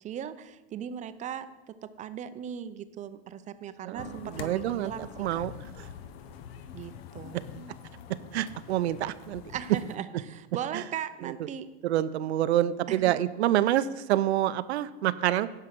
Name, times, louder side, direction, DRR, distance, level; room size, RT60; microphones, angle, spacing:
voice 1, 0.0-5.4 6.7-7.6 9.5-11.7 12.9-13.0, right 9 dB, 25° right, 12 dB, 0.5 m, -38 dB
voice 2, 3.8-4.9 5.2-5.5 5.8-5.9 8.3-9.4 10.7-10.8 11.2-11.3 11.8-15.5, right 13 dB, 90° right, 14 dB, 0.6 m, -27 dB
sound 1, 4.0-10.0, left 8 dB, 70° left, 0.9 m, -45 dB
9.8 x 5.7 x 6.5 m, 1.1 s
supercardioid pair, 125°, 32 cm